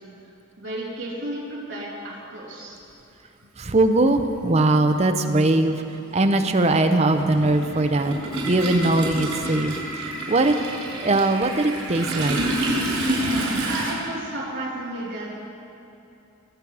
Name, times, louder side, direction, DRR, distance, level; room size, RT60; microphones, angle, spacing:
voice 1, 0.6-2.8 13.6-15.3, right 1 dB, 60° right, -7 dB, 3.0 m, -33 dB
Toilet flush, 3.4-3.5 4.8-5.0 5.3-13.9, right 1 dB, 90° right, 3.6 m, -28 dB
voice 2, 3.6-5.8 6.1-8.2 8.5-9.7 10.3-10.5 11.0-12.4, right 2 dB, 30° right, 7 dB, 0.6 m, -20 dB
20.5 x 7.4 x 4.7 m, 2.8 s
head